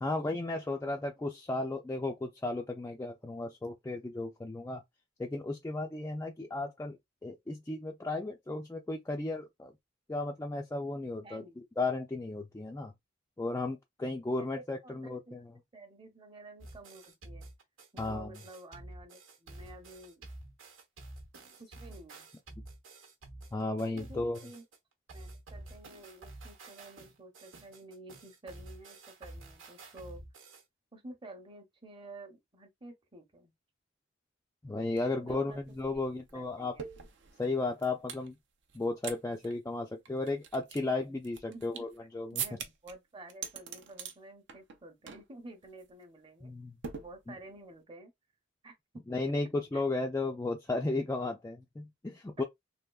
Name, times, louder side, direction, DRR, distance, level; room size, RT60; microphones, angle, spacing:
voice 1, 0.0-4.8 5.2-7.0 7.2-9.7 10.1-12.9 13.4-15.5 18.0-18.3 23.5-24.4 34.6-36.8 37.4-38.3 38.7-41.9 42.1-42.4 46.4-46.7 49.1-52.4, left 2 dB, 15° left, 0.3 m, -34 dB
voice 2, 11.2-11.6 14.4-15.3 15.7-17.5 17.9-20.3 21.6-22.3 23.9-24.6 25.1-30.2 30.9-33.5 35.0-36.9 41.1-41.2 41.5-41.9 42.3-46.5 47.0-48.1 48.6-48.7 49.1-49.4 49.7-49.8 52.4-52.5, right 2 dB, 25° right, 0.8 m, -51 dB
sound 1, 16.6-24.8 25.1-30.6, right 2 dB, 85° right, 1.0 m, -49 dB
sound 2, 35.0-35.1 35.3-38.3 38.7-39.2 39.4-39.5 40.0-42.0 42.3-42.9 43.3-44.1 44.5-44.8 45.1-45.3 45.6-45.9 46.8-47.6, right 7 dB, 65° right, 0.6 m, -42 dB
3.5 x 2.3 x 2.3 m
head